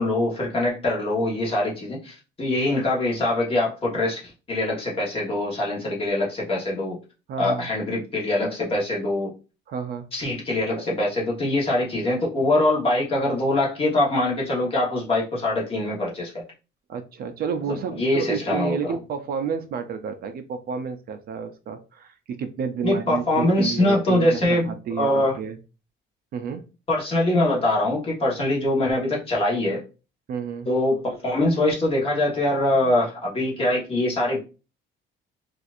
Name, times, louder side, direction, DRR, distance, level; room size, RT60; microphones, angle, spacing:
voice 1, 0.0-7.0 7.4-9.3 10.1-16.4 17.7-19.0 22.8-25.4 26.9-29.8 30.7-34.4, left 1 dB, 30° left, -3 dB, 1.2 m, -23 dB
voice 2, 7.3-7.7 9.7-10.1 16.9-25.6 26.3-26.6 30.3-30.7, right 6 dB, 50° right, 8 dB, 0.4 m, -30 dB
4.1 x 2.5 x 2.5 m, 0.32 s
cardioid pair, 160°, 20 cm